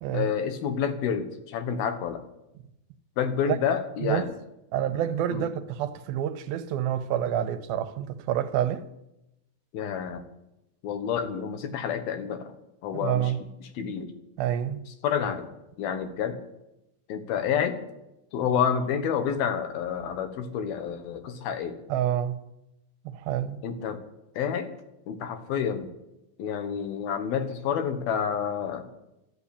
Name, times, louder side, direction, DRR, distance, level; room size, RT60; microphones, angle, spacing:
voice 1, 0.1-2.2 3.2-4.3 5.3-5.5 9.7-10.2 10.8-12.5 12.8-13.3 13.6-14.1 15.0-15.5 15.8-16.4 17.1-17.8 18.3-21.7 23.6-24.0 24.4-24.7 25.1-25.9 26.4-28.9, left 7 dB, 80° left, 3.2 m, -29 dB
voice 2, 4.7-8.8 12.9-13.4 14.4-14.8 21.9-22.4 23.1-23.6, right 10 dB, 90° right, 2.7 m, -28 dB
13.5 x 11.0 x 8.6 m
omnidirectional pair, 4.3 m